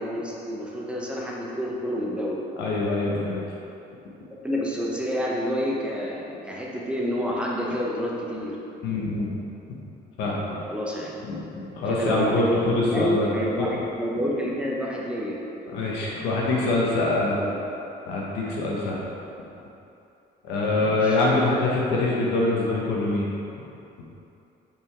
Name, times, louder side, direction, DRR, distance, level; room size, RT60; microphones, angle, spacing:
voice 1, 0.0-2.4 4.4-8.6 10.7-11.1 11.9-13.7 14.0-15.4 17.3-17.6 19.2-19.3 20.7-21.2, equal, 5° right, -4 dB, 1.1 m, -28 dB
voice 2, 2.6-3.4 8.8-9.3 10.2-10.6 11.2-13.3 13.6-13.7 15.7-17.4 18.1-19.1 20.4-23.3, left 2 dB, 85° left, -4 dB, 1.6 m, -24 dB
7.5 x 5.4 x 3.8 m, 2.8 s
cardioid pair, 110°, 17 cm